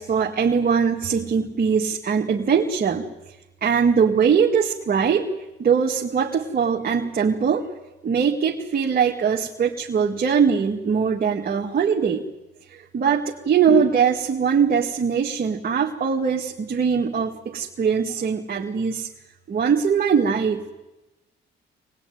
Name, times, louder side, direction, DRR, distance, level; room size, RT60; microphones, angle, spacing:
voice 1, 0.0-3.1 3.6-5.3 5.6-7.7 8.0-12.2 12.7-19.1 19.5-20.8, right 6 dB, 50° right, 0 dB, 2.0 m, -21 dB
24.0 x 20.0 x 9.4 m, 1.1 s
cardioid pair, 90°, 20 cm